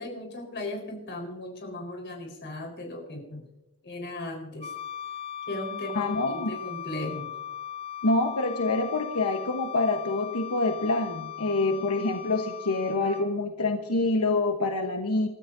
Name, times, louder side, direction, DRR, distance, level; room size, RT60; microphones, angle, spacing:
voice 1, 0.0-3.4 3.8-4.7 5.5-7.3, left 1 dB, 55° left, 1 dB, 4.4 m, -37 dB
Wind instrument woodwind instrument, 4.6-13.3, left 10 dB, 25° left, 0.9 m, -38 dB
voice 2, 5.9-6.5 8.0-15.3, left 2 dB, 90° left, 4 dB, 1.1 m, -26 dB
28.5 x 13.5 x 2.7 m, 0.98 s
head